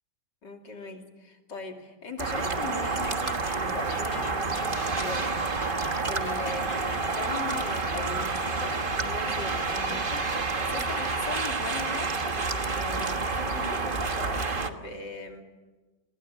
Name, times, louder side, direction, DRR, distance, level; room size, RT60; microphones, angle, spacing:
voice 1, 0.4-12.1 12.7-15.4, left 3 dB, 65° left, 3 dB, 3.3 m, -40 dB
sound 1, 2.2-14.7, right 3 dB, 30° right, 1.3 m, -29 dB
sound 2, 2.5-11.1, left 8 dB, 80° left, 2.0 m, -44 dB
28.5 x 21.5 x 8.4 m, 1.3 s
omnidirectional pair, 2.1 m